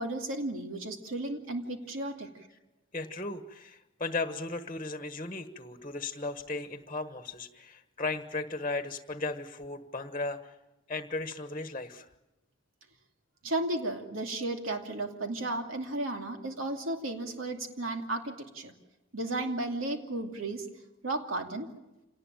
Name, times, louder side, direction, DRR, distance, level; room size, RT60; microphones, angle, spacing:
voice 1, 0.0-2.3 13.4-18.7 19.1-20.7 21.0-21.7, right 2 dB, 85° right, 3 dB, 2.7 m, -34 dB
voice 2, 2.9-10.5 10.9-12.1, left 3 dB, 25° left, 8 dB, 1.3 m, -36 dB
27.0 x 19.0 x 9.1 m, 1.0 s
head